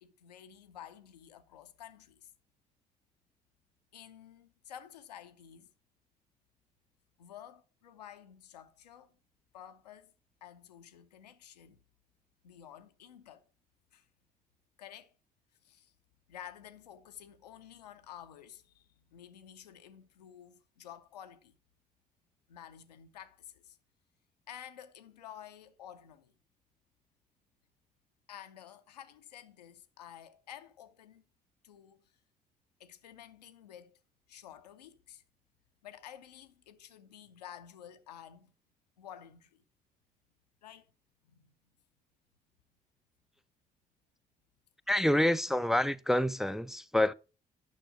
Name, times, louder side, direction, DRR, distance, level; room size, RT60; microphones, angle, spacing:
voice 1, 0.0-2.3 3.9-5.7 7.2-9.1 9.5-10.1 10.4-11.8 12.4-13.5 13.9-14.1 14.8-15.1 15.6-15.9 16.3-21.5 22.5-23.8 24.5-26.3 28.3-31.2 31.6-32.0 32.8-34.0 34.3-35.2 35.8-38.5 39.0-39.6 40.6-40.9 41.2-41.5, left 10 dB, 80° left, 0.6 m, -51 dB
voice 2, 44.9-47.1, left 1 dB, ahead, 0.4 m, -27 dB
9.3 x 6.1 x 4.6 m
figure-of-eight pair, 40°, 21 cm